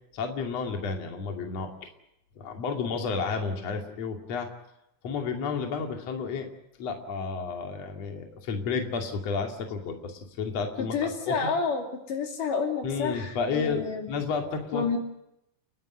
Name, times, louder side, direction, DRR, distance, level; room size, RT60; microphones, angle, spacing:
voice 1, 0.1-1.7 2.4-4.5 5.0-6.5 6.8-11.5 12.8-15.0, left 5 dB, 50° left, 4 dB, 3.4 m, -31 dB
voice 2, 10.8-14.1 14.7-15.0, left 5 dB, 75° left, 4 dB, 4.3 m, -29 dB
29.5 x 12.5 x 9.8 m, 0.84 s
omnidirectional pair, 3.8 m